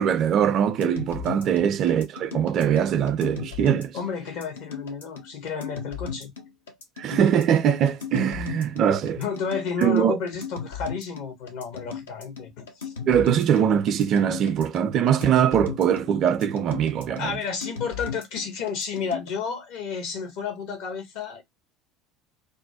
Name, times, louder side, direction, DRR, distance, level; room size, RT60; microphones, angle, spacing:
voice 1, 0.0-4.0 7.0-9.2 9.8-10.2 13.1-17.4, right 8 dB, 45° right, 0.3 m, -22 dB
sound 1, 0.8-19.3, left 6 dB, 75° left, 0.5 m, -37 dB
voice 2, 3.9-6.3 9.2-12.9 17.1-21.4, left 5 dB, 60° left, 0.8 m, -31 dB
2.4 x 2.2 x 2.3 m
figure-of-eight pair, 70°, 0 cm